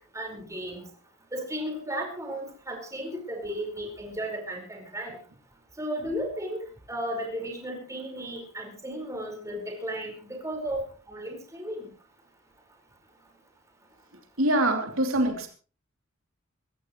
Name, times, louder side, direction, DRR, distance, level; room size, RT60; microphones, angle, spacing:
voice 1, 0.1-0.8 1.3-5.2 5.8-6.6 6.9-10.8 11.1-11.9, equal, 15° right, 1 dB, 4.9 m, -34 dB
voice 2, 14.4-15.5, right 1 dB, 85° right, 3 dB, 3.0 m, -24 dB
22.5 x 15.5 x 3.2 m, 0.37 s
head